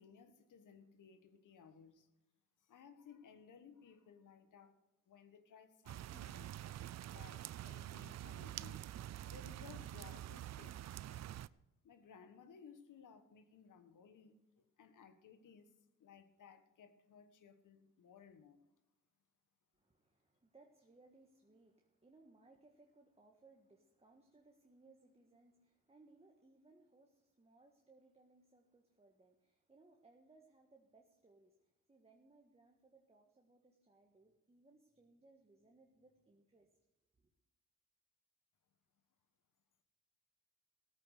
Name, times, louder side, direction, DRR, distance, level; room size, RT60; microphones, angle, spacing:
voice 1, 0.0-2.1 2.6-4.8 5.1-6.6 7.1-8.9 9.2-11.2 11.8-15.7 16.0-18.6, left 6 dB, 70° left, 9 dB, 1.5 m, -60 dB
sound 1, 5.9-11.5, right 13 dB, 55° right, 0.5 m, -47 dB
voice 2, 19.7-36.7 37.2-37.3, right 3 dB, 20° right, 2 dB, 1.6 m, -67 dB
16.0 x 8.8 x 6.5 m, 0.91 s
cardioid pair, 80°, 32 cm